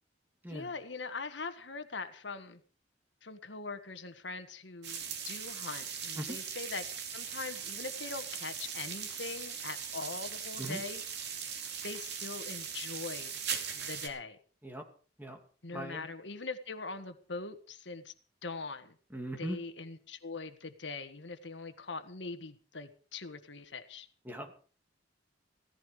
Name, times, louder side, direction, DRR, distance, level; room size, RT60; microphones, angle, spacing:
voice 1, 0.5-2.6 3.2-6.9 7.1-11.0 11.8-13.4 13.7-14.4 15.6-18.1 18.4-18.9 19.4-24.1, left 3 dB, 70° left, 1.6 m, -42 dB
sound 1, 4.8-14.1, right 7 dB, 65° right, 2.7 m, -40 dB
voice 2, 15.7-16.1 19.1-19.6 24.2-24.7, equal, 10° right, 2.6 m, -40 dB
16.5 x 15.0 x 4.9 m
head